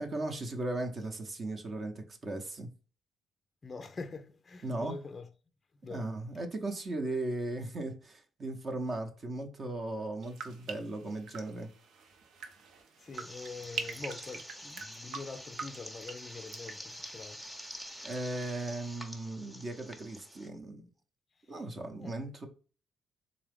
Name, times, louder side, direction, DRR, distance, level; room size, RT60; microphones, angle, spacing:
voice 1, 0.0-2.7 4.6-4.9 5.9-11.7 18.0-20.9 21.5-22.5, right 2 dB, 40° right, 0.7 m, -37 dB
voice 2, 3.6-5.3 5.8-6.1 13.0-17.4 22.0-22.2, left 4 dB, 30° left, 0.3 m, -44 dB
sound 1, 10.2-18.2 18.4-19.0, right 5 dB, 75° right, 0.6 m, -45 dB
sound 2, 13.1-20.5, equal, 5° right, 0.7 m, -47 dB
3.7 x 2.3 x 3.4 m
cardioid pair, 90°, 0 cm